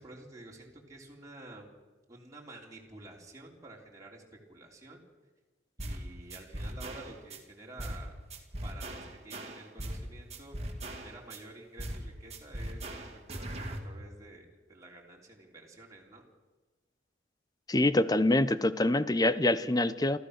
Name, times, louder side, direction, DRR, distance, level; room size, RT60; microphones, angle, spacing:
voice 1, 0.0-1.7 2.1-4.2 4.5-5.0 5.8-8.1 8.6-10.6 10.9-16.3, right 2 dB, 15° right, -2 dB, 3.4 m, -50 dB
sound 1, 5.8-6.0 6.3-7.4 7.8-8.0 8.3-10.0 10.3-11.4 11.8-12.0 12.3-13.8, right 1 dB, 35° right, 2.4 m, -39 dB
voice 2, 17.7-20.2, left 1 dB, 20° left, 14 dB, 0.7 m, -25 dB
28.5 x 14.5 x 6.6 m, 1.2 s
head